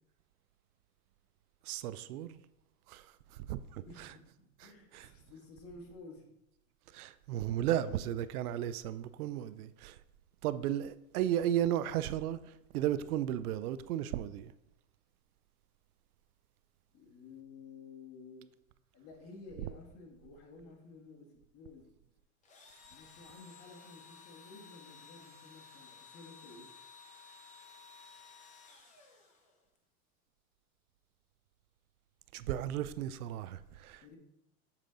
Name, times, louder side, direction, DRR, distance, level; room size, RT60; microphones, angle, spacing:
voice 1, 1.7-2.4 2.9-3.0 3.5-4.1 4.9-5.1 6.9-10.0 10.4-12.4 12.7-14.5 32.3-34.2, right 11 dB, 85° right, 0.5 m, -34 dB
voice 2, 3.8-4.2 4.6-6.3 7.4-7.6 16.9-18.5 18.9-22.0 22.9-26.7 34.0-34.2, left 3 dB, 35° left, 1.6 m, -53 dB
Engine / Drill, 22.4-29.8, left 5 dB, 15° left, 0.9 m, -56 dB
7.3 x 4.6 x 3.8 m
supercardioid pair, 140°, 43 cm